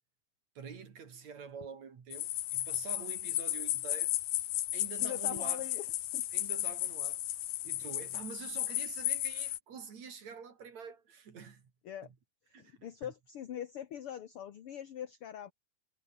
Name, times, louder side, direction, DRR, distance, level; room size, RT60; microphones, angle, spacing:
voice 1, 0.6-4.2 4.7-5.7 6.3-7.2 7.6-11.7 12.0-12.1 12.5-13.1, right 6 dB, 55° right, 4.1 m, -47 dB
sound 1, 2.1-9.6, left 14 dB, 80° left, 2.9 m, -34 dB
voice 2, 5.0-5.9 6.1-6.2 11.8-12.1 12.6-15.5, left 10 dB, 55° left, 1.7 m, -42 dB
omnidirectional pair, 4.0 m